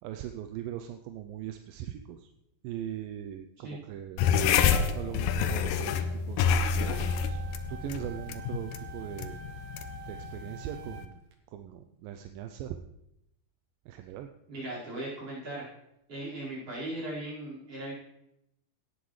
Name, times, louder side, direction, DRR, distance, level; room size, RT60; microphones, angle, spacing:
voice 1, 0.0-2.3 2.6-4.2 4.9-7.4 7.7-9.4 9.7-11.2 11.5-12.8 13.9-14.3, right 11 dB, 80° right, 7 dB, 2.1 m, -40 dB
sound 1, 4.2-11.1, left 7 dB, 80° left, 2.0 m, -28 dB
sound 2, 6.4-11.3, right 9 dB, 65° right, 1.7 m, -47 dB
voice 2, 14.5-15.7 16.1-17.9, right 1 dB, 40° right, -7 dB, 5.7 m, -38 dB
17.0 x 10.0 x 3.2 m, 0.83 s
omnidirectional pair, 4.4 m